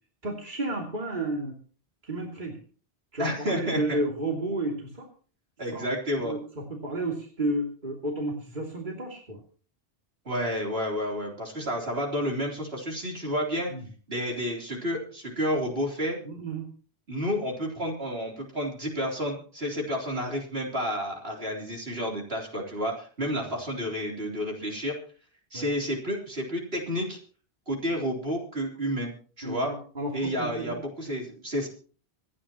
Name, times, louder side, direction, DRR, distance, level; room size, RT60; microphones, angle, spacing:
voice 1, 0.2-1.6 2.0-2.5 3.1-5.1 5.7-5.9 6.2-9.4 13.7-13.8 16.2-16.6 25.5-25.7 29.4-30.8, right 1 dB, 45° right, -1 dB, 3.0 m, -32 dB
voice 2, 3.2-4.0 5.6-6.3 10.3-13.7 14.1-16.2 17.1-25.0 25.5-27.2 27.7-29.1 29.4-29.7 30.1-31.7, equal, 60° right, -1 dB, 3.9 m, -30 dB
26.5 x 9.9 x 3.0 m, 0.41 s
omnidirectional pair, 1.1 m